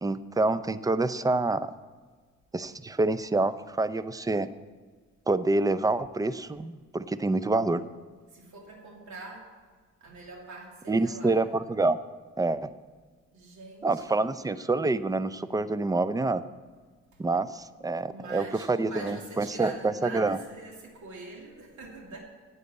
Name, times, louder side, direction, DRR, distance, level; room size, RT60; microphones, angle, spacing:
voice 1, 0.0-1.7 2.5-4.5 5.3-7.8 10.9-12.0 12.4-12.7 13.8-16.4 17.2-20.4, right 3 dB, 10° right, 14 dB, 0.5 m, -27 dB
voice 2, 8.3-9.5 10.0-11.6 13.3-14.2 18.1-22.2, right 3 dB, 70° right, 0 dB, 2.8 m, -44 dB
9.3 x 8.2 x 8.5 m, 1.5 s
cardioid pair, 90°, 30 cm